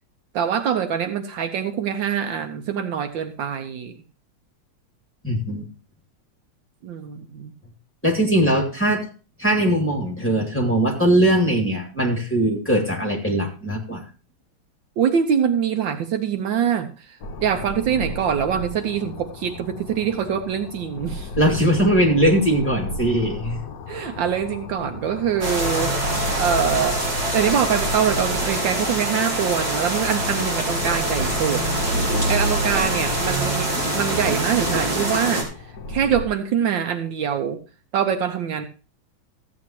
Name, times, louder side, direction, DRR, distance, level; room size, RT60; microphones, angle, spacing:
voice 1, 0.3-4.0 6.8-7.5 15.0-21.3 23.9-27.0 27.3-31.6 31.9-35.5 35.9-37.6 37.9-38.7, right 8 dB, 70° right, 7 dB, 1.4 m, -24 dB
voice 2, 5.2-5.6 8.0-9.0 9.4-14.0 21.4-23.6, right 1 dB, 5° left, -1 dB, 2.3 m, -20 dB
sound 1, 17.2-36.3, left 2 dB, 55° left, 1.1 m, -35 dB
sound 2, 25.4-35.4, right 1 dB, 50° right, 3.8 m, -24 dB
14.5 x 8.7 x 2.9 m, 0.34 s
omnidirectional pair, 2.2 m